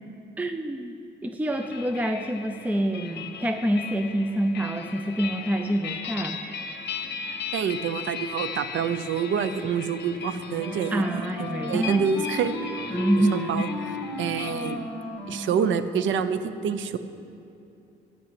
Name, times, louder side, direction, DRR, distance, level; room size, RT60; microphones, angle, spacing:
voice 1, 0.4-6.4 10.9-12.2 12.9-13.7, right 1 dB, 5° right, 6 dB, 0.5 m, -27 dB
sound 1, 1.5-14.8, left 6 dB, 60° left, 0.9 m, -38 dB
voice 2, 7.5-11.0 11.7-12.5 13.3-13.7 14.2-14.8 15.3-17.0, right 7 dB, 70° right, 12 dB, 0.6 m, -27 dB
Wind instrument woodwind instrument, 10.1-16.2, equal, 10° left, 1.8 m, -35 dB
11.5 x 5.4 x 8.3 m, 2.7 s
cardioid pair, 90°, 20 cm